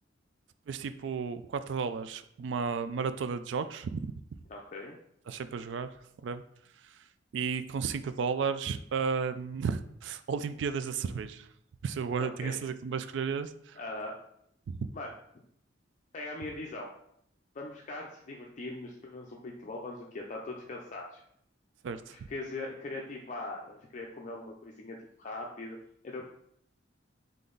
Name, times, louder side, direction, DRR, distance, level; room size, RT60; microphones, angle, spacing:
voice 1, 0.7-4.1 5.3-5.9 6.2-6.4 7.3-11.5 11.8-13.8 14.7-14.9 21.8-22.3, right 6 dB, 70° right, 12 dB, 0.3 m, -33 dB
voice 2, 4.5-4.9 12.2-12.6 13.8-14.2 14.9-15.1 16.1-16.9 17.5-21.2 21.9-25.8 26.0-26.2, left 2 dB, 40° left, 0 dB, 0.5 m, -40 dB
3.8 x 3.4 x 3.8 m, 0.72 s
head